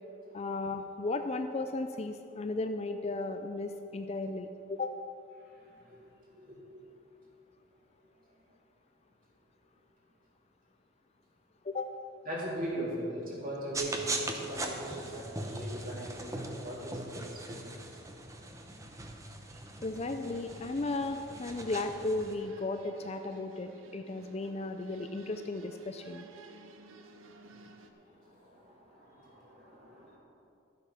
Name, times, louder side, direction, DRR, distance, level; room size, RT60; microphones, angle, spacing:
voice 1, 0.3-4.9 11.6-11.9 19.8-26.3, left 2 dB, 30° left, 7 dB, 0.4 m, -35 dB
voice 2, 5.4-6.0 6.3-6.7 12.3-17.6 17.9-18.0 19.5-19.6 27.9-30.2, right 1 dB, 40° right, -5 dB, 2.9 m, -40 dB
sound 1, 13.7-22.3, right 2 dB, 15° right, 0.7 m, -40 dB
sound 2, 20.3-27.9, right 3 dB, 75° right, 0.8 m, -54 dB
11.5 x 8.0 x 5.8 m, 2.7 s
head